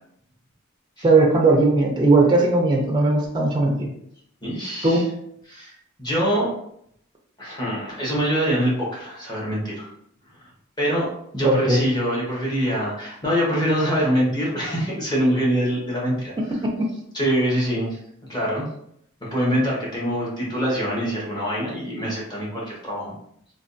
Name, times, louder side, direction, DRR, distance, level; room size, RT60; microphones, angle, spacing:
voice 1, 1.0-3.9 4.8-5.1 11.4-11.8, right 2 dB, 20° right, 0 dB, 0.4 m, -18 dB
voice 2, 4.4-5.0 5.5-6.5 7.4-9.9 10.8-16.6 17.1-18.0 18.3-18.7 19.3-23.1, equal, 20° left, -5 dB, 0.9 m, -24 dB
3.3 x 2.2 x 2.5 m, 0.70 s
head